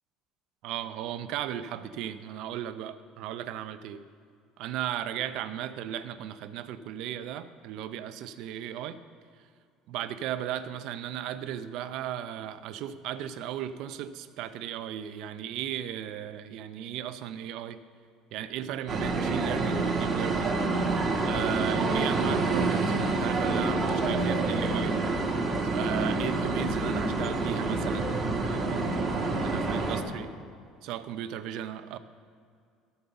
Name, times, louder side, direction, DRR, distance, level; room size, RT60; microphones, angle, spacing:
voice 1, 0.6-4.0 4.6-9.0 9.9-17.8 18.3-20.6 21.3-25.0 25.6-28.1 28.4-29.1 29.4-30.3 30.8-32.0, right 11 dB, 65° right, 12 dB, 0.5 m, -36 dB
sound 1, 18.9-30.0, right 3 dB, 25° right, 1.3 m, -27 dB
13.0 x 5.3 x 6.9 m, 2.2 s
cardioid pair, 145°, 0 cm